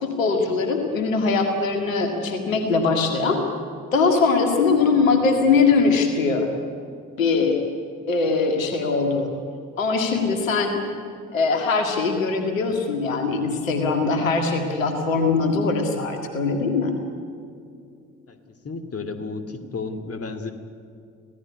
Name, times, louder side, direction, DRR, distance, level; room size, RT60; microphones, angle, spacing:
voice 1, 0.0-3.4 3.9-6.5 7.2-7.6 8.1-9.3 9.8-10.8 11.3-17.0, left 4 dB, 80° left, 5 dB, 2.1 m, -21 dB
voice 2, 18.6-20.5, left 3 dB, 35° left, 9 dB, 2.6 m, -32 dB
26.0 x 17.0 x 9.8 m, 2.4 s
figure-of-eight pair, 45°, 39 cm